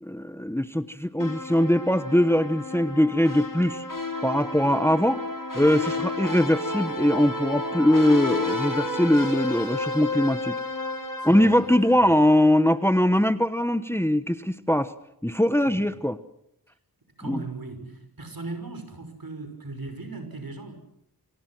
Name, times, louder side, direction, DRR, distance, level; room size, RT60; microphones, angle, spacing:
voice 1, 0.0-3.8 4.2-5.2 5.5-10.6 11.2-14.9 15.2-16.2 17.3-17.4, left 1 dB, 5° left, 12 dB, 1.1 m, -21 dB
sound 1, 1.2-12.4, left 2 dB, 60° left, 4.4 m, -31 dB
voice 2, 11.2-11.6 15.7-16.0 17.2-20.8, right 3 dB, 70° right, 8 dB, 6.0 m, -38 dB
28.5 x 26.0 x 6.2 m, 0.76 s
wide cardioid pair, 60°, 37 cm